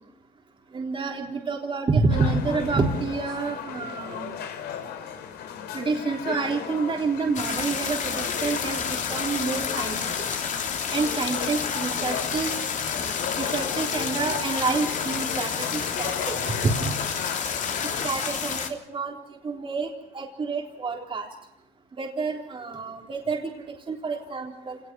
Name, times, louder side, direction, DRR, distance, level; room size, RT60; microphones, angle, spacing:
voice 1, 0.7-4.3 5.7-10.0 10.9-12.6 13.4-16.4 16.6-16.9 18.0-19.1 19.4-21.3 22.0-24.8, right 4 dB, 30° right, 1 dB, 3.6 m, -28 dB
sound 1, 2.1-18.1, left 8 dB, 75° left, 3.7 m, -35 dB
sound 2, 7.3-18.7, left 6 dB, 50° left, 3.3 m, -30 dB
27.0 x 19.0 x 6.1 m, 0.84 s
cardioid pair, 110°, 17 cm